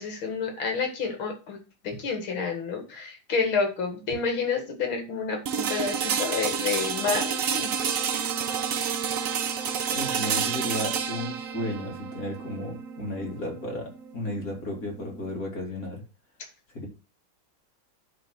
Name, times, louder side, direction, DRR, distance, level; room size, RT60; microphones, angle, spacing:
voice 1, 0.0-1.6 1.8-7.7, left 5 dB, 70° left, 3 dB, 2.6 m, -29 dB
sound 1, 5.5-15.4, right 7 dB, 55° right, 0.9 m, -29 dB
voice 2, 9.9-16.0 16.7-16.9, left 1 dB, 40° left, -1 dB, 3.0 m, -34 dB
10.0 x 3.8 x 6.3 m, 0.33 s
omnidirectional pair, 2.3 m